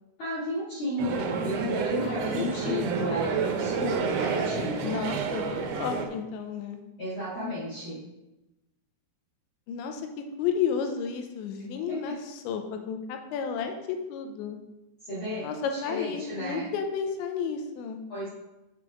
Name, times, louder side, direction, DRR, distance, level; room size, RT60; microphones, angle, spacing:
voice 1, 0.2-5.0 7.0-8.0 11.9-12.1 15.0-16.7 18.1-18.3, left 1 dB, 65° left, -10 dB, 1.2 m, -33 dB
sound 1, 1.0-6.1, right 6 dB, 85° right, 3.1 m, -29 dB
voice 2, 2.0-3.1 4.8-6.8 9.7-12.2 12.4-14.6 15.4-18.0, left 6 dB, 85° left, 5 dB, 3.1 m, -32 dB
7.8 x 4.9 x 5.0 m, 1.0 s
omnidirectional pair, 5.1 m